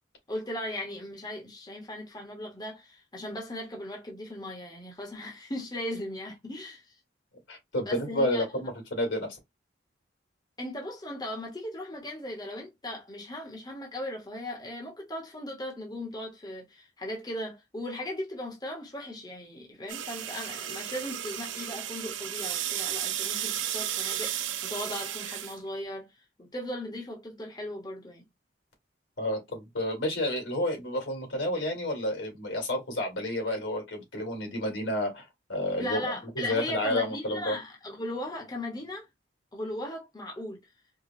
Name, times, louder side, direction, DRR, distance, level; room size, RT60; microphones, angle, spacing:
voice 1, 0.3-6.9 7.8-8.4 10.6-26.1 26.4-28.2 35.8-39.1 39.5-40.6, left 1 dB, 20° left, 1.0 m, -37 dB
voice 2, 7.5-9.4 29.2-35.2 35.5-37.6, left 1 dB, 80° left, 2.1 m, -30 dB
sound 1, 19.9-25.6, right 11 dB, 80° right, 0.5 m, -34 dB
4.8 x 2.3 x 2.6 m
head